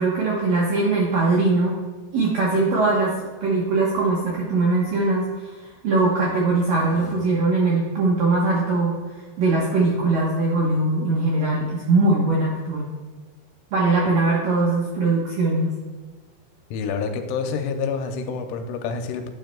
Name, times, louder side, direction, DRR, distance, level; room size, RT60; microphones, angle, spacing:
voice 1, 0.0-1.7 2.1-3.1 3.4-9.0 9.4-12.9 13.7-15.7, right 3 dB, 75° right, -4 dB, 2.0 m, -21 dB
sound 1, 6.6-7.1, left 7 dB, 70° left, 3.9 m, -43 dB
voice 2, 16.7-19.3, left 5 dB, 90° left, 6 dB, 3.1 m, -27 dB
10.5 x 9.2 x 2.2 m, 1.4 s
omnidirectional pair, 5.5 m